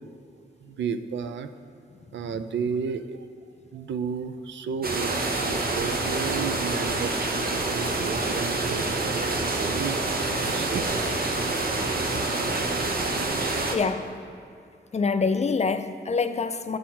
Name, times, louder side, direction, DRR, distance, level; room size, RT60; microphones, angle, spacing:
voice 1, 0.6-1.5 2.1-3.3 3.7-10.0 10.4-11.2 12.1-12.2 13.0-13.2, right 6 dB, 85° right, 10 dB, 0.4 m, -33 dB
sound 1, 4.8-13.8, right 2 dB, 55° right, 0.9 m, -27 dB
voice 2, 13.7-14.1 14.9-16.8, left 4 dB, 35° left, 10 dB, 0.4 m, -25 dB
9.1 x 4.2 x 5.8 m, 2.4 s
cardioid pair, 55°, 19 cm